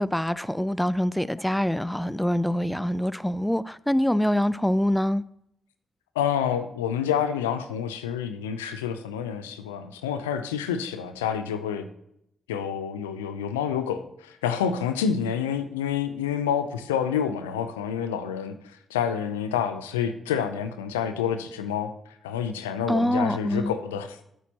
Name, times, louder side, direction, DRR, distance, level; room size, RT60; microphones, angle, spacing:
voice 1, 0.0-5.2 22.9-23.8, left 1 dB, 5° left, 0.4 m, -25 dB
voice 2, 6.2-11.9 12.5-18.6 18.9-21.9 22.2-24.2, left 8 dB, 90° left, 0.6 m, -28 dB
11.0 x 8.4 x 3.0 m
hypercardioid pair, 40°, 0 cm